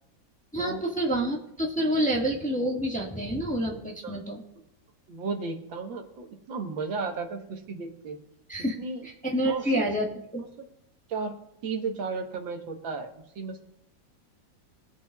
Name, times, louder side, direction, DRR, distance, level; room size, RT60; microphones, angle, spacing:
voice 1, 0.5-4.4 8.5-8.8 9.0-10.4, right 1 dB, 5° left, -1 dB, 1.3 m, -28 dB
voice 2, 5.1-8.2 8.8-9.0 9.5-9.9 10.6-10.7 11.1-11.3 11.6-13.6, right 4 dB, 85° right, 4 dB, 2.0 m, -34 dB
23.0 x 8.3 x 2.3 m, 0.78 s
omnidirectional pair, 2.0 m